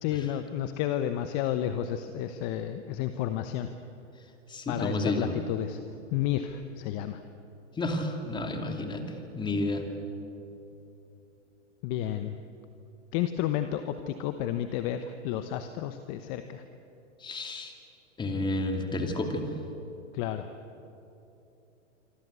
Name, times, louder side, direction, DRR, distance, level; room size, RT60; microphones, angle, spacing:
voice 1, 0.0-3.7 4.7-5.8 6.1-7.2 11.8-12.3 13.1-16.6 20.1-20.5, left 11 dB, 35° left, 9 dB, 1.0 m, -31 dB
voice 2, 4.2-5.4 7.7-9.9 17.2-17.7 18.2-19.5, left 2 dB, 10° left, 4 dB, 2.7 m, -31 dB
26.0 x 26.0 x 8.3 m, 3.0 s
hypercardioid pair, 140°, 37 cm